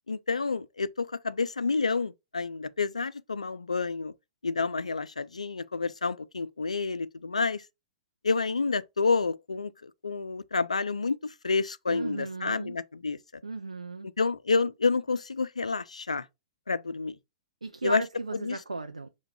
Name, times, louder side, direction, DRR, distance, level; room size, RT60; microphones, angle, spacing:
voice 1, 0.1-4.1 4.4-7.6 8.2-13.2 14.2-16.3 16.7-17.2 17.8-18.0 18.3-18.6, left 4 dB, 75° left, 0.3 m, -29 dB
voice 2, 11.9-12.8 13.4-14.1 17.6-19.1, right 3 dB, 80° right, 0.4 m, -36 dB
5.0 x 2.2 x 4.4 m
figure-of-eight pair, 110°, 4 cm